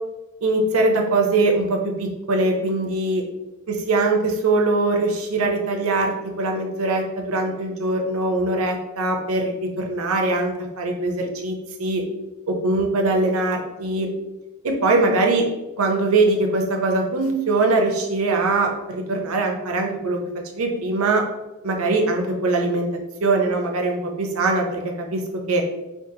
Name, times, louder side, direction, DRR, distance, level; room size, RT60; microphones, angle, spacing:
voice 1, 0.4-3.2 3.7-12.0 12.5-14.1 14.6-15.5 15.8-20.2 20.5-21.2 21.6-22.9 23.2-25.2 25.5-25.6, right 2 dB, 70° right, 2 dB, 0.6 m, -22 dB
3.7 x 2.5 x 2.7 m, 1.0 s
head